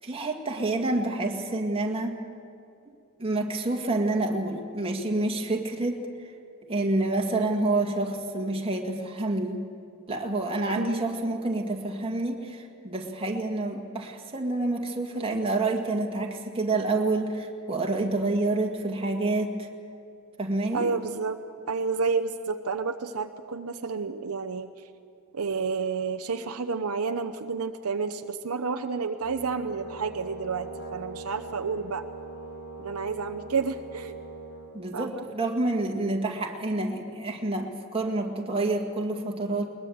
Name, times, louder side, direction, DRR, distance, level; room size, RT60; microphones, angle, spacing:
voice 1, 0.0-2.2 3.2-6.1 6.7-9.7 10.1-19.7 20.4-20.9 34.7-39.7, right 2 dB, 25° right, 2 dB, 2.0 m, -28 dB
voice 2, 20.7-21.4 21.7-24.7 25.3-32.1 32.8-34.2 34.9-35.3, right 5 dB, 75° right, 8 dB, 0.8 m, -30 dB
Brass instrument, 29.2-34.7, right 3 dB, 70° left, 3.9 m, -42 dB
21.0 x 21.0 x 8.0 m, 2.6 s
head